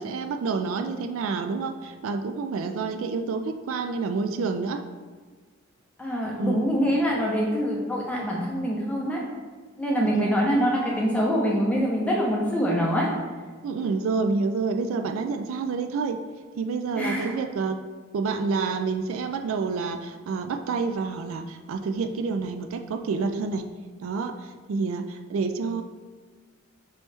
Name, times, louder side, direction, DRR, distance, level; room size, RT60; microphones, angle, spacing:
voice 1, 0.0-4.8 6.4-6.7 10.0-10.3 13.6-16.2 16.6-17.8 18.1-23.6 24.0-25.8, right 4 dB, 75° right, 7 dB, 0.3 m, -28 dB
voice 2, 6.0-9.2 9.8-13.1 16.9-17.3, equal, 5° left, -4 dB, 0.7 m, -25 dB
5.3 x 3.0 x 3.3 m, 1.4 s
head